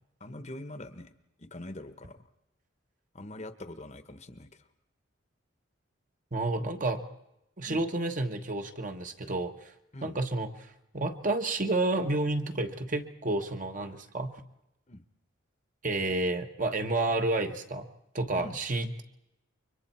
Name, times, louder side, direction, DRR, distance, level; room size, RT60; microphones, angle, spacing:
voice 1, 0.2-1.1 1.4-2.2 3.1-4.7 7.7-7.8 9.9-10.2 14.9-15.0 18.4-18.6, left 1 dB, 35° left, 10 dB, 1.1 m, -43 dB
voice 2, 6.3-7.0 7.6-9.7 10.0-14.3 15.8-17.9 18.1-19.0, right 2 dB, 40° right, 5 dB, 1.3 m, -30 dB
30.0 x 24.5 x 4.4 m, 0.87 s
head